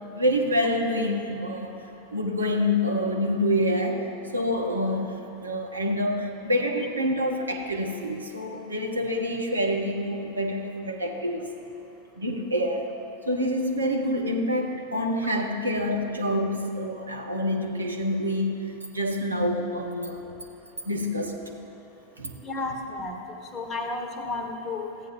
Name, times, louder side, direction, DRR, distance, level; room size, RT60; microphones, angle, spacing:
voice 1, 0.1-1.8 2.1-4.0 4.3-11.5 12.2-12.9 13.3-20.2 20.8-21.3 22.2-22.3, left 1 dB, 80° right, 2 dB, 1.0 m, -27 dB
voice 2, 22.4-23.2 23.5-24.9, left 3 dB, 25° left, 4 dB, 1.1 m, -32 dB
14.5 x 8.9 x 3.7 m, 2.8 s
figure-of-eight pair, 90°, 0 cm